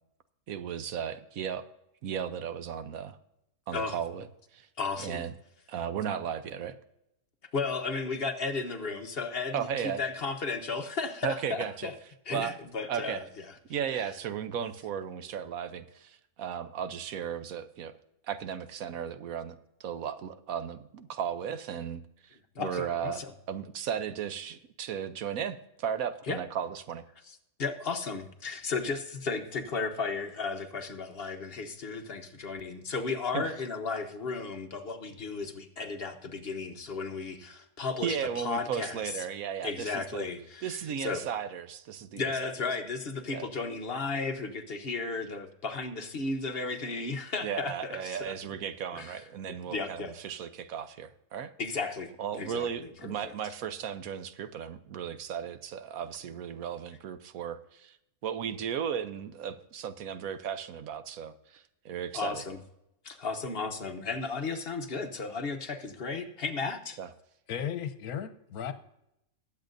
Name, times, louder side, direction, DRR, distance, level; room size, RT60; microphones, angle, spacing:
voice 1, 0.5-1.7 2.0-3.2 3.7-4.3 4.5-4.7 5.0-5.3 5.7-6.8 9.5-10.0 11.2-11.9 12.3-12.5 12.9-13.2 13.7-17.9 18.3-27.0 33.3-33.5 38.0-40.3 40.6-42.5 43.3-43.4 47.4-51.5 52.2-58.0 58.2-62.4 67.0-67.1, right 8 dB, 70° right, 11 dB, 1.1 m, -35 dB
voice 2, 4.8-5.2 7.5-11.9 12.3-13.3 22.5-23.3 26.3-26.4 27.6-39.0 39.6-41.3 42.1-48.3 48.9-49.2 49.7-50.1 51.6-53.1 62.1-62.6 63.0-67.0, left 4 dB, 45° left, 6 dB, 1.1 m, -34 dB
voice 3, 67.5-68.7, left 8 dB, 80° left, 11 dB, 1.3 m, -35 dB
20.5 x 8.1 x 2.6 m, 0.83 s
omnidirectional pair, 1.6 m